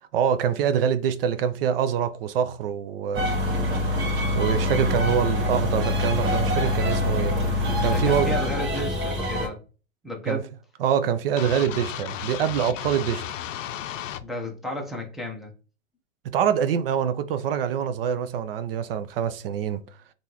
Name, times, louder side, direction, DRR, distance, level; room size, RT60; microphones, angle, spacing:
voice 1, 0.1-3.3 4.3-7.3 7.8-8.3 10.3-10.4 10.8-13.2 16.2-19.8, right 8 dB, 50° right, 0.4 m, -25 dB
sound 1, 3.1-9.5, left 1 dB, 30° right, 1.0 m, -24 dB
voice 2, 7.8-9.6 10.0-10.5 14.2-15.5, left 1 dB, ahead, 0.6 m, -33 dB
sound 2, 11.4-14.2, left 10 dB, 80° left, 0.5 m, -34 dB
3.6 x 2.5 x 2.9 m
hypercardioid pair, 125°, 38 cm